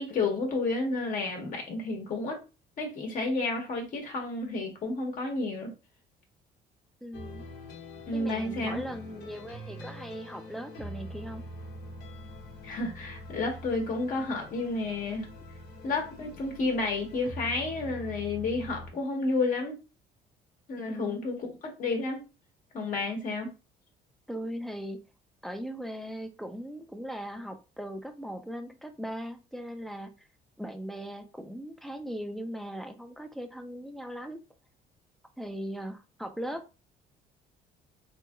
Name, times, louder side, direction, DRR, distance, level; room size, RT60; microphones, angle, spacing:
voice 1, 0.0-2.4 2.8-5.7 8.1-8.8 12.6-15.3 15.8-19.7 20.7-21.5 21.8-22.2 22.7-23.5, left 3 dB, 55° left, 1 dB, 1.0 m, -31 dB
voice 2, 7.0-7.4 8.1-11.4 20.8-21.2 24.3-25.0 25.4-30.3 30.6-34.4 35.4-36.6, equal, ahead, 6 dB, 0.4 m, -39 dB
sound 1, 7.1-18.9, left 1 dB, 85° left, 0.9 m, -44 dB
3.0 x 2.7 x 2.3 m, 0.30 s
cardioid pair, 110°, 17 cm